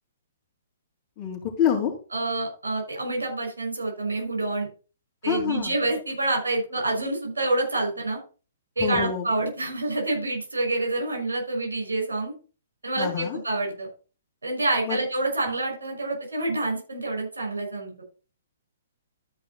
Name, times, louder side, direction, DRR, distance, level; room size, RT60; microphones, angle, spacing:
voice 1, 1.2-1.9 5.2-5.7 8.8-9.3 13.0-13.4 14.8-15.0, left 8 dB, 30° left, 0 dB, 3.3 m, -26 dB
voice 2, 2.1-4.7 5.2-8.2 8.8-12.3 12.8-13.9 14.4-17.9, right 2 dB, 70° right, 1 dB, 5.7 m, -27 dB
12.5 x 5.4 x 4.2 m, 0.34 s
figure-of-eight pair, 120°, 0 cm